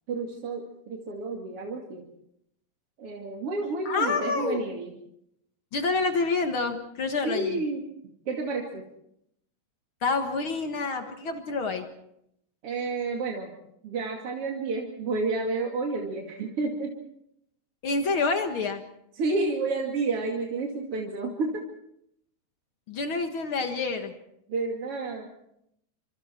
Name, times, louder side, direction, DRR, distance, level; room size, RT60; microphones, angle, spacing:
voice 1, 0.1-2.1 3.0-4.9 7.2-7.8 8.3-8.8 12.6-13.5 13.8-16.9 19.1-21.6 24.5-25.3, right 3 dB, 40° right, 0 dB, 2.6 m, -30 dB
voice 2, 3.8-4.6 5.7-7.6 10.0-11.9 17.8-18.8 22.9-24.1, left 4 dB, 70° left, 6 dB, 1.2 m, -28 dB
28.5 x 26.0 x 4.5 m, 0.76 s
omnidirectional pair, 4.9 m